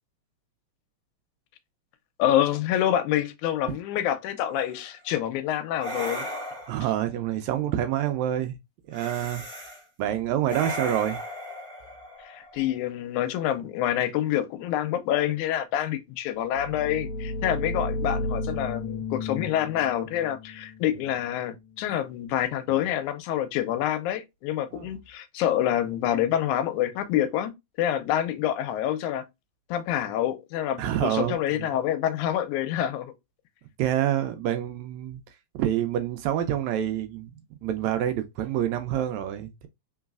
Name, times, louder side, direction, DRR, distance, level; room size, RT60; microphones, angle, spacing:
voice 1, 2.2-6.3 12.3-27.5 27.8-29.2 29.7-33.1, left 11 dB, 85° left, 2.0 m, -27 dB
sound 1, 4.6-4.9 5.8-7.0 8.9-9.8 10.5-12.7, equal, 25° right, 1.0 m, -36 dB
voice 2, 6.7-8.6 8.9-9.4 10.0-11.2 22.7-22.8 24.7-24.9 30.8-31.7 33.8-35.2 35.5-37.3 37.6-39.7, right 11 dB, 80° right, 1.7 m, -27 dB
sound 2, 16.5-22.1, left 2 dB, 65° left, 1.2 m, -34 dB
3.9 x 3.9 x 2.3 m
omnidirectional pair, 3.5 m